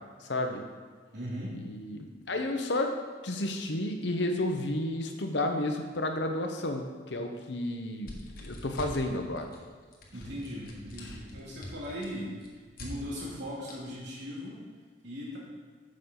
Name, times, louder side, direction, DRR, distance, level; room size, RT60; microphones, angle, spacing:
voice 1, 0.2-0.6 1.5-2.9 3.2-9.5 11.0-11.1, left 1 dB, 70° left, 4 dB, 0.9 m, -32 dB
voice 2, 1.1-1.6 10.1-12.4 12.8-14.6 15.0-15.4, equal, 70° right, -5 dB, 2.7 m, -38 dB
sound 1, 8.0-9.1 9.4-9.6 9.9-12.9 13.7-13.8, left 1 dB, 50° left, 1.3 m, -44 dB
9.6 x 6.5 x 3.9 m, 1.5 s
head